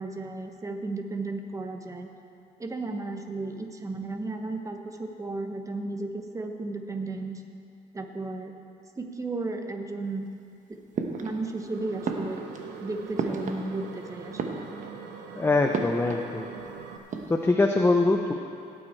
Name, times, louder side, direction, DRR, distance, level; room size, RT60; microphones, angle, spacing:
voice 1, 0.0-2.1 2.6-7.4 7.9-8.5 9.0-10.3 10.7-10.8 11.2-12.4 12.8-14.7, right 2 dB, 20° right, 5 dB, 1.2 m, -34 dB
sound 1, 10.9-11.7 12.0-14.0 14.3-15.1 15.7-16.7 17.0-17.5, right 4 dB, 50° right, 1.1 m, -34 dB
sound 2, 11.6-17.0, right 6 dB, 80° right, 1.1 m, -42 dB
voice 2, 15.4-16.5 17.3-18.3, left 2 dB, 15° left, 3 dB, 0.7 m, -23 dB
16.5 x 9.0 x 4.4 m, 2.5 s
cardioid pair, 110°, 17 cm